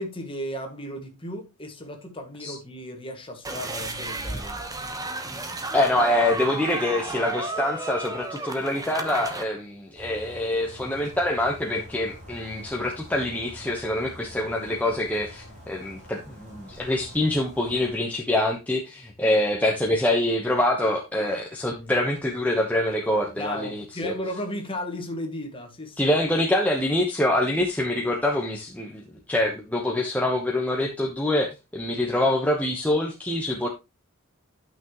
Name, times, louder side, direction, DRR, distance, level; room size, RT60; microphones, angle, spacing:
voice 1, 0.0-4.6 19.2-19.3 23.4-26.2, equal, 25° left, 1.9 m, -35 dB
sound 1, 3.4-9.4, right 2 dB, 15° right, 1.1 m, -33 dB
voice 2, 5.7-24.1 26.0-33.7, left 1 dB, 5° left, 1.1 m, -25 dB
sound 2, 10.0-17.9, equal, 35° right, 5.5 m, -46 dB
11.5 x 6.1 x 3.0 m
head